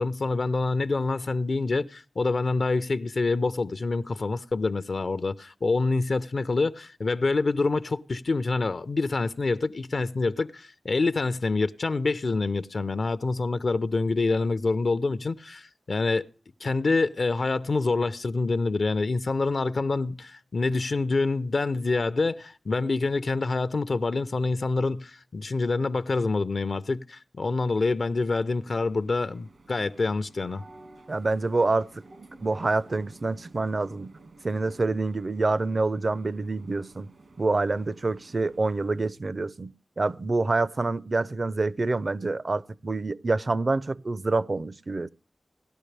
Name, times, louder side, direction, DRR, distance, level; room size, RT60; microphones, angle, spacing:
voice 1, 0.0-16.3 16.6-30.6, left 3 dB, 70° left, 0.6 m, -26 dB
sound 1, 28.3-39.1, right 3 dB, 80° right, 1.7 m, -52 dB
voice 2, 31.1-32.0 32.4-34.1 34.4-45.1, right 3 dB, 55° right, 0.5 m, -27 dB
17.5 x 12.0 x 3.3 m
cardioid pair, 45°, 0 cm